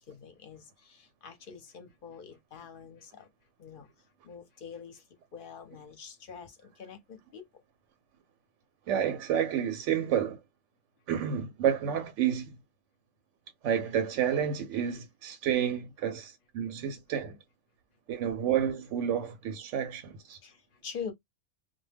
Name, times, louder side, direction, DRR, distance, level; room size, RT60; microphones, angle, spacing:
voice 1, 0.1-3.3 3.6-3.9 4.2-5.0 5.3-7.5 20.4-21.1, left 6 dB, 50° left, 0.7 m, -45 dB
voice 2, 8.9-10.4 11.1-12.5 13.6-17.4 18.1-20.4, right 9 dB, 70° right, 0.9 m, -30 dB
2.2 x 2.2 x 3.2 m
omnidirectional pair, 1.4 m